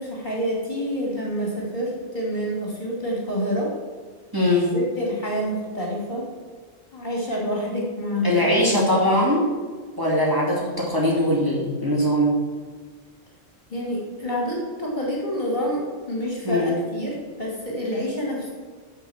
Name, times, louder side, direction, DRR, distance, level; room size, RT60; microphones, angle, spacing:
voice 1, 0.0-3.7 4.7-6.3 6.9-9.0 13.7-18.5, equal, 35° left, -3 dB, 2.8 m, -28 dB
voice 2, 4.3-4.7 8.2-9.4 10.0-12.3 16.4-16.7, left 1 dB, 15° right, -5 dB, 2.4 m, -21 dB
9.4 x 6.4 x 7.2 m, 1.5 s
omnidirectional pair, 1.3 m